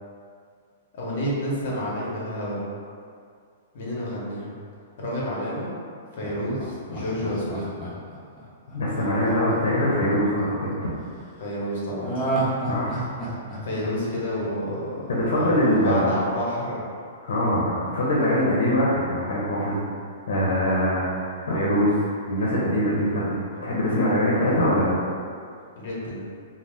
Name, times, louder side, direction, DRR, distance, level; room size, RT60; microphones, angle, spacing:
voice 1, 0.9-2.6 3.7-4.5 5.0-5.7 6.1-7.6 11.4-12.4 13.6-16.8 25.7-26.3, equal, 55° left, -5 dB, 0.9 m, -29 dB
Laughter, 6.2-10.4 12.0-15.0 15.4-15.5, right 2 dB, 10° left, 0.5 m, -31 dB
voice 2, 8.7-10.9 12.7-12.9 15.1-16.1 17.2-19.8 20.3-22.0 22.3-23.3 23.6-24.9, equal, 90° left, -6 dB, 0.7 m, -23 dB
2.6 x 2.0 x 3.3 m, 2.3 s
hypercardioid pair, 170°, 0 cm